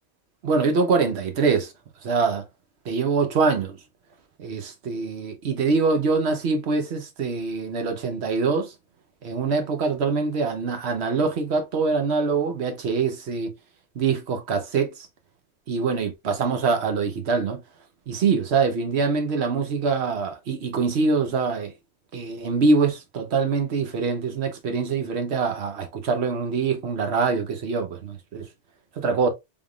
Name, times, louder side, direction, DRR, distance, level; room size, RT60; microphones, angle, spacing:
voice 1, 0.4-1.7 2.0-2.4 2.9-3.8 4.4-8.7 9.2-13.5 14.0-15.1 15.7-17.6 18.1-21.7 22.1-28.5 29.0-29.3, right 4 dB, 70° right, 1.1 m, -24 dB
3.6 x 3.5 x 2.3 m
omnidirectional pair, 1.1 m